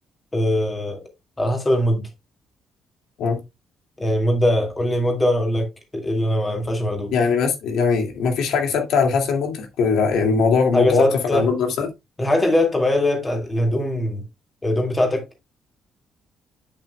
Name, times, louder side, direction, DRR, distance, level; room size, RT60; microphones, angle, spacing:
voice 1, 0.3-1.0 1.4-2.0 4.0-7.1 10.7-11.5 12.2-14.2 14.6-15.3, left 1 dB, 15° left, 2.0 m, -21 dB
voice 2, 7.1-11.1 11.3-11.9, left 5 dB, 85° left, 2.2 m, -20 dB
8.5 x 7.4 x 2.3 m
cardioid pair, 165°, 0 cm